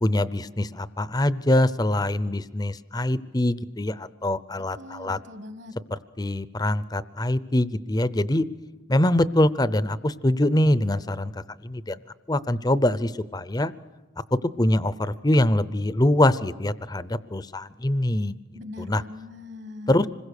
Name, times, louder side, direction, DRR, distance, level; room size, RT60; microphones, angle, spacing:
voice 1, 0.0-5.2 5.9-8.5 8.9-12.0 12.3-13.7 14.3-18.4 18.8-19.0 19.9-20.1, left 1 dB, 20° left, 15 dB, 0.6 m, -24 dB
voice 2, 4.8-5.7 18.5-20.0, left 2 dB, 55° right, 9 dB, 1.6 m, -40 dB
26.5 x 21.5 x 6.6 m, 1.3 s
head